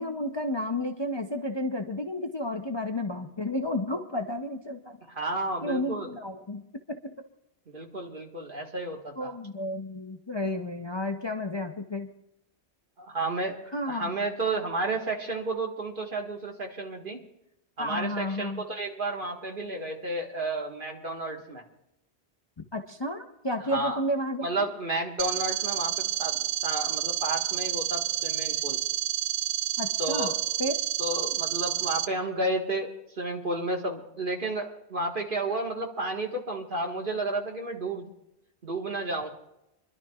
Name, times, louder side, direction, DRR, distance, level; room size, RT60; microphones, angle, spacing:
voice 1, 0.0-5.0 5.6-7.1 9.2-12.1 13.7-14.0 17.8-18.6 22.6-24.7 29.8-30.3 30.6-30.7, left 1 dB, 30° left, 4 dB, 0.6 m, -32 dB
voice 2, 5.1-6.1 7.7-9.3 13.0-13.6 13.9-17.2 17.8-21.6 23.7-24.0 24.4-28.8 30.0-30.4 31.0-32.9 33.1-38.1 38.6-39.3, right 2 dB, 50° right, 1 dB, 1.8 m, -32 dB
sound 1, 25.2-32.1, right 12 dB, 85° right, 0.9 m, -29 dB
29.0 x 11.5 x 2.4 m, 0.87 s
omnidirectional pair, 1.1 m